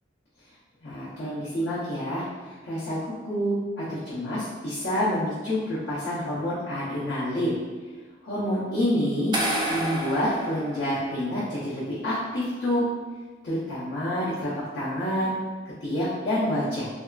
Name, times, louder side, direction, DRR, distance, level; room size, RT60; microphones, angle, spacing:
voice 1, 0.8-7.6 8.2-9.3 9.7-12.8 13.4-15.3 15.8-16.8, equal, 75° left, -12 dB, 0.8 m, -28 dB
sound 1, 9.3-11.4, right 1 dB, 25° right, 0.3 m, -30 dB
2.7 x 2.3 x 2.3 m, 1.4 s
head